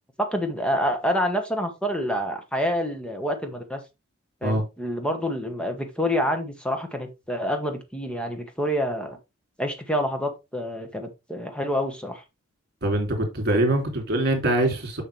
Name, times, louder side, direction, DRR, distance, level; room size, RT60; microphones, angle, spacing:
voice 1, 0.2-3.8 4.4-9.2 9.6-12.2, equal, 5° left, 1.3 m, -27 dB
voice 2, 12.8-15.0, right 1 dB, 50° right, 2.7 m, -23 dB
6.5 x 6.2 x 3.3 m
head